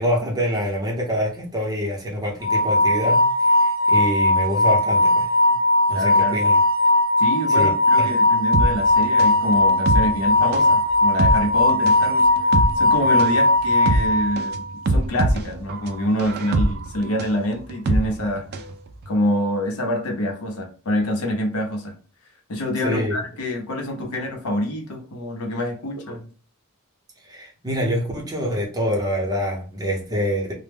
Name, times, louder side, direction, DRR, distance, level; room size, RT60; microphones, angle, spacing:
voice 1, 0.0-5.3 5.9-6.6 7.5-8.2 22.8-23.2 27.3-30.5, equal, 15° right, 0.7 m, -26 dB
sound 1, 2.4-14.6, left 2 dB, 15° left, 0.7 m, -18 dB
voice 2, 5.9-6.4 7.2-14.6 14.9-18.6 19.1-21.9 22.5-26.2, left 1 dB, 80° left, 0.7 m, -26 dB
sound 2, 8.5-18.7 19.0-19.1, right 2 dB, 45° right, 0.3 m, -24 dB
2.1 x 2.1 x 3.3 m
head